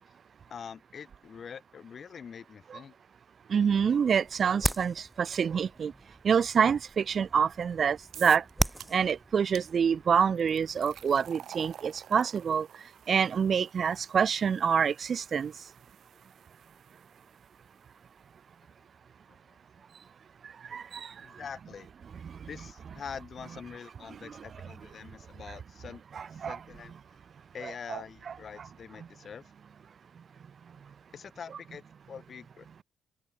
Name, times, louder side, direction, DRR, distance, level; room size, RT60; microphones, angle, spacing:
voice 1, 0.5-2.9 21.2-21.9 22.5-26.0 26.3-26.9 27.5-29.5 31.1-32.7, left 7 dB, 50° left, 6.9 m, -44 dB
voice 2, 3.5-5.9 6.2-8.5 8.9-15.7 20.4-21.4 22.2-22.5 24.1-24.4 25.5-25.6 26.1-26.6 27.6-28.7, right 7 dB, 50° right, 0.8 m, -27 dB
sound 1, 3.6-11.3, right 1 dB, 10° right, 7.9 m, -38 dB
sound 2, 8.1-8.5 8.8-9.1 9.5-9.7 10.4-17.5, right 10 dB, 70° right, 3.4 m, -50 dB
open air
cardioid pair, 90°, 0 cm